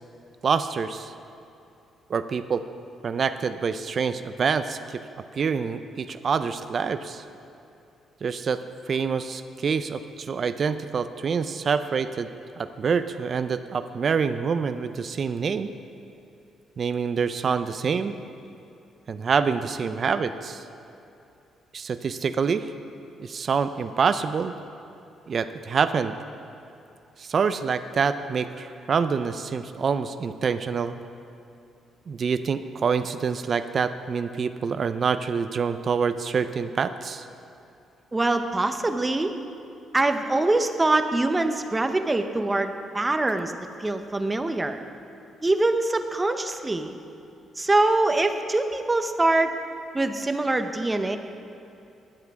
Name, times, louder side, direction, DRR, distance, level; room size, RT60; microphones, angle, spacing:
voice 1, 0.4-1.1 2.1-2.6 3.0-5.0 5.3-7.2 8.2-8.6 8.9-12.3 12.6-15.7 16.8-18.2 19.1-20.6 21.7-22.7 23.2-24.5 25.3-26.1 27.2-30.9 32.1-37.3, right 6 dB, 50° right, 11 dB, 0.4 m, -26 dB
voice 2, 38.1-39.3 39.9-43.5 43.8-44.8 45.4-46.9 47.6-49.5 49.9-51.2, right 2 dB, 20° right, 8 dB, 0.8 m, -24 dB
20.0 x 8.2 x 3.6 m, 2.7 s
cardioid pair, 90°, 0 cm